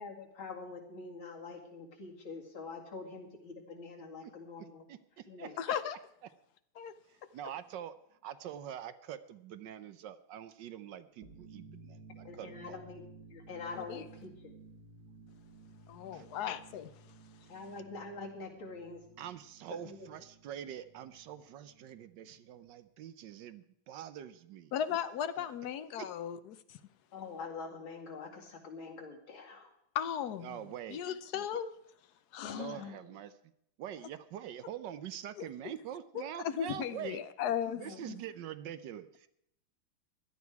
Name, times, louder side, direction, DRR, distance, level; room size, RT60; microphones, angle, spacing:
voice 1, 0.0-4.8 5.3-5.6 12.2-13.0 13.3-14.6 17.5-19.0 19.8-20.1 27.1-29.7 32.4-33.0 37.7-38.0, left 4 dB, 85° left, 0 dB, 3.1 m, -45 dB
voice 2, 4.6-5.5 7.1-7.9 8.2-12.8 16.1-16.3 19.2-24.7 25.4-25.5 26.0-26.1 30.4-31.0 31.3-31.4 32.5-33.5 33.8-37.2 37.8-39.3, right 10 dB, 70° right, 13 dB, 1.3 m, -45 dB
voice 3, 5.6-6.0 6.8-6.9 13.8-14.1 15.9-16.9 24.7-26.8 29.9-30.6 30.9-31.7 32.3-32.6 35.4-35.5 36.4-37.8 38.1-38.2, left 9 dB, 65° left, 12 dB, 1.1 m, -36 dB
sound 1, 11.1-22.7, right 3 dB, 55° right, 2.4 m, -56 dB
16.5 x 11.5 x 4.7 m, 0.73 s
omnidirectional pair, 2.1 m